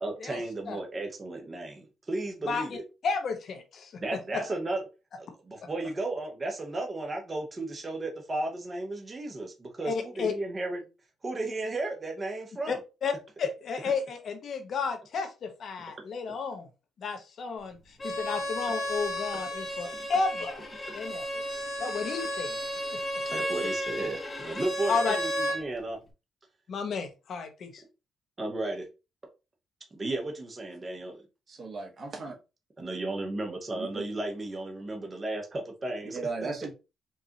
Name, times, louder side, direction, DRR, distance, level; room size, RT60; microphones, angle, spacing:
voice 1, 0.0-2.8 4.0-4.8 5.2-10.9 11.2-12.8 23.3-26.0 28.4-28.9 29.9-31.2 32.8-36.2, right 2 dB, 30° right, 2 dB, 1.0 m, -34 dB
voice 2, 2.5-2.8 3.0-4.4 5.6-5.7 9.8-10.3 12.7-12.8 13.0-13.1 13.4-16.7 17.0-20.6 20.9-21.4 21.8-23.2 24.9-25.2 25.5-25.6 26.7-27.8, left 5 dB, 60° left, 6 dB, 1.0 m, -32 dB
Bowed string instrument, 18.0-25.6, equal, 30° left, 1.1 m, -33 dB
voice 3, 31.5-32.3 33.7-34.0 36.1-36.7, right 3 dB, 45° right, 2 dB, 1.4 m, -36 dB
4.6 x 2.5 x 2.9 m, 0.28 s
cardioid pair, 90°, 0 cm